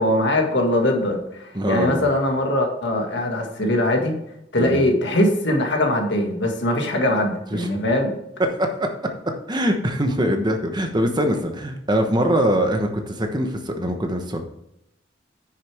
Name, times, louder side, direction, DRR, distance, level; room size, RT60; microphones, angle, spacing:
voice 1, 0.0-4.1 4.5-8.2, left 1 dB, 65° left, 2 dB, 1.8 m, -21 dB
voice 2, 1.5-2.1 4.6-4.9 7.5-7.7 8.6-8.9 9.5-14.4, equal, 25° right, 5 dB, 1.0 m, -22 dB
9.6 x 6.6 x 3.5 m, 0.82 s
head